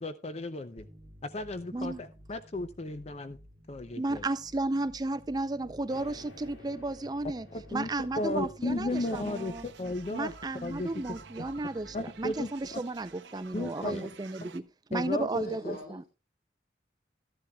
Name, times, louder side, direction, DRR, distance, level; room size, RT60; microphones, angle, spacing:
voice 1, 0.0-0.9 1.2-3.4 3.7-4.2 7.5-7.9 8.2-10.3 10.6-11.5 11.9-12.8 13.5-14.1 14.9-15.8, left 2 dB, 35° left, 0.5 m, -35 dB
sound 1, 0.8-13.9, equal, 35° right, 2.0 m, -54 dB
voice 2, 4.0-7.5 7.7-9.6 10.1-14.6 14.9-16.0, right 2 dB, 20° right, 0.4 m, -33 dB
sound 2, 5.9-9.8, left 1 dB, 75° left, 2.1 m, -54 dB
sound 3, 8.9-14.6, right 6 dB, 70° right, 0.8 m, -51 dB
voice 3, 15.2-16.1, equal, 50° left, 4.5 m, -46 dB
13.5 x 11.5 x 2.3 m
head